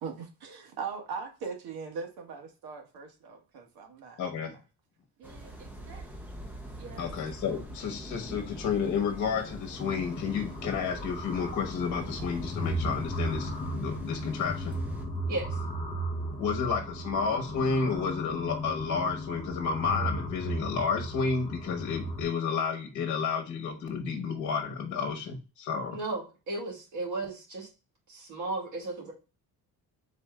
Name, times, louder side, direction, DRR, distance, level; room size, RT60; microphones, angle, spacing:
voice 1, 0.0-4.2 5.2-6.0 6.8-7.1 7.4-7.6, right 5 dB, 70° right, 3 dB, 1.3 m, -41 dB
voice 2, 4.2-4.5 7.0-14.8 16.4-26.0, left 5 dB, 50° left, 4 dB, 1.1 m, -31 dB
sound 1, 5.2-15.1, equal, 5° right, 0.6 m, -43 dB
sound 2, 9.8-22.2, equal, 20° left, 1.0 m, -36 dB
voice 3, 25.9-27.7 28.1-29.1, right 2 dB, 50° right, -1 dB, 2.1 m, -35 dB
4.1 x 3.4 x 3.6 m, 0.31 s
cardioid pair, 175°, 38 cm